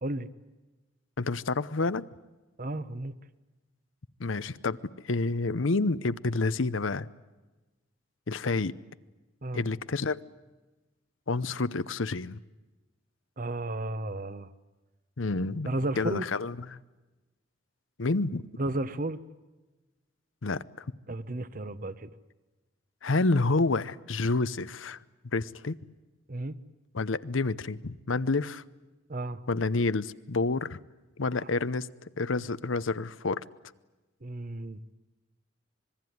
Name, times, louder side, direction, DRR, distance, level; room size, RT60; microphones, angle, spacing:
voice 1, 1.2-2.1 4.2-7.1 8.3-8.7 9.5-10.2 11.3-12.4 15.2-16.8 18.0-18.4 20.4-20.9 23.0-25.0 25.2-25.8 26.9-28.6 29.5-30.8 31.2-31.9 32.2-33.4, left 3 dB, 85° left, 0.8 m, -29 dB
voice 2, 2.6-3.2 9.4-9.6 13.4-14.5 15.6-16.3 18.6-19.2 21.1-22.1 26.3-26.6 29.1-29.4 34.2-34.8, right 2 dB, 45° right, 1.0 m, -33 dB
26.0 x 21.0 x 9.5 m
head